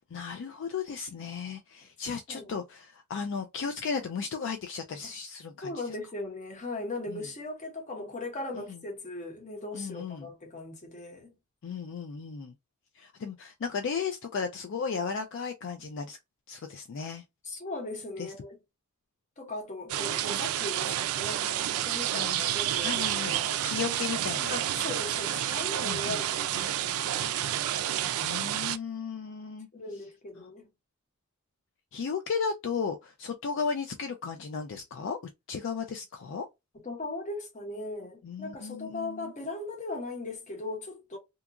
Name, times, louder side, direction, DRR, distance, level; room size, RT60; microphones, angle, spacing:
voice 1, 0.1-5.8 7.1-7.2 8.5-8.8 9.7-10.3 11.6-12.5 13.0-16.2 16.5-17.2 18.2-18.3 22.1-22.4 22.8-23.4 23.6-24.5 25.8-26.2 28.2-29.7 31.9-35.2 35.5-36.5 38.2-39.3, left 5 dB, 60° left, 0.3 m, -35 dB
voice 2, 5.6-11.3 17.4-18.6 19.4-23.6 24.5-27.6 29.7-30.7 36.8-41.2, left 2 dB, 35° left, 0.9 m, -38 dB
sound 1, 19.9-28.8, right 12 dB, 80° right, 0.3 m, -30 dB
2.8 x 2.3 x 2.4 m
head